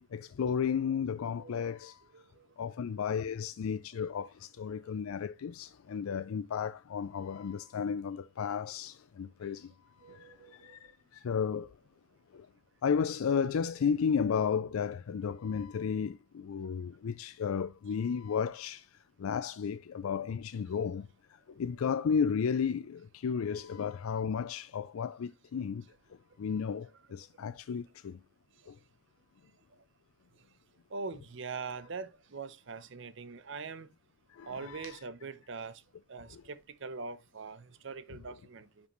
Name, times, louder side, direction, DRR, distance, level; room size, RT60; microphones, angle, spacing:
voice 1, 0.0-2.0 2.6-9.7 10.1-10.3 10.6-10.8 11.1-11.7 12.3-12.5 12.8-18.8 19.2-21.1 21.6-25.8 26.4-28.2 28.7-28.8 34.3-35.0 36.3-36.4, left 6 dB, 85° left, 0.4 m, -33 dB
voice 2, 2.1-2.5 10.0-10.8 30.9-33.9 34.4-35.8 36.1-38.9, right 4 dB, 60° right, 0.7 m, -43 dB
9.8 x 5.2 x 3.0 m
head